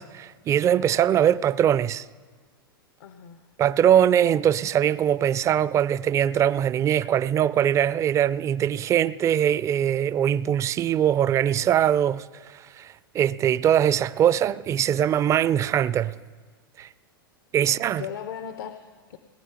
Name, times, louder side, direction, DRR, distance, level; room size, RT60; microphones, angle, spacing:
voice 1, 0.0-2.1 3.6-12.3 12.5-16.2 16.8-16.9 17.5-18.0, right 10 dB, 25° right, 0.4 m, -22 dB
voice 2, 3.0-3.4 17.7-19.2, left 8 dB, 70° left, 0.7 m, -38 dB
18.0 x 9.8 x 5.7 m
hypercardioid pair, 105°, 12 cm